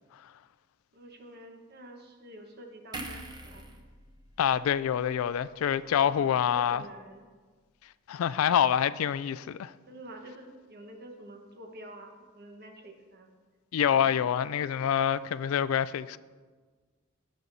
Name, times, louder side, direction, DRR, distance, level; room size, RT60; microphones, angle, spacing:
voice 1, 0.9-3.6 5.8-7.3 9.9-13.3 14.0-14.2, right 1 dB, 50° right, 1.3 m, -48 dB
sound 1, 2.9-6.3 6.6-6.8, right 2 dB, 20° right, 0.9 m, -46 dB
voice 2, 4.4-6.8 8.1-9.7 13.7-16.2, left 9 dB, 85° left, 0.3 m, -26 dB
16.5 x 6.5 x 2.7 m
head